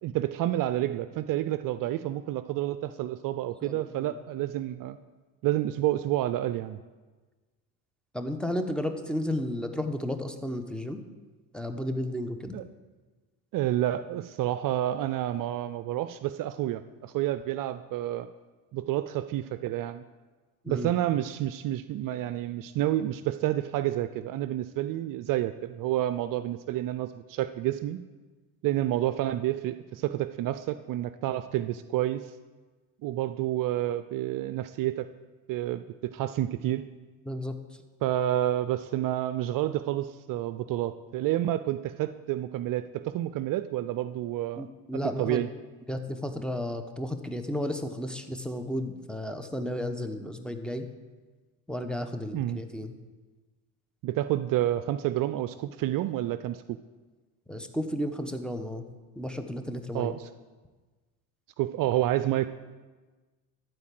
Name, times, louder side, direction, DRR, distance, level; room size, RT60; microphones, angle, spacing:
voice 1, 0.0-5.0 5.4-6.8 12.5-12.6 13.5-18.3 18.7-20.0 20.7-28.0 28.6-32.3 33.0-35.1 35.5-36.8 38.0-44.7 45.0-45.5 52.3-52.6 54.0-56.8 59.9-60.3 61.6-62.5, right 13 dB, 55° right, 12 dB, 0.5 m, -29 dB
voice 2, 3.6-4.1 8.1-11.0 11.5-12.6 20.6-20.9 37.3-37.6 44.6-45.4 45.9-50.9 51.7-52.9 57.5-58.8 59.2-60.2, left 1 dB, ahead, 6 dB, 1.1 m, -33 dB
13.0 x 4.6 x 7.7 m, 1.3 s
hypercardioid pair, 70°, 40 cm